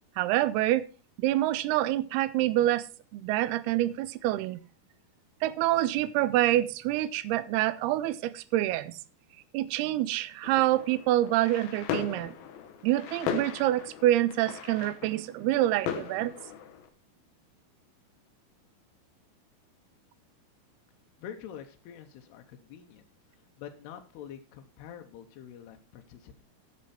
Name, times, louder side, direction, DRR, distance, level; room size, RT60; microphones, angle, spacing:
voice 1, 0.2-0.9 1.2-2.9 3.1-4.6 5.4-9.0 9.5-12.3 12.8-16.3, right 14 dB, 85° right, 16 dB, 2.6 m, -26 dB
sound 1, 10.4-16.9, left 8 dB, 70° left, 2.7 m, -38 dB
voice 2, 21.2-23.0 23.6-26.4, left 9 dB, 90° left, 4 dB, 3.0 m, -46 dB
13.0 x 6.7 x 4.3 m, 0.34 s
omnidirectional pair, 4.5 m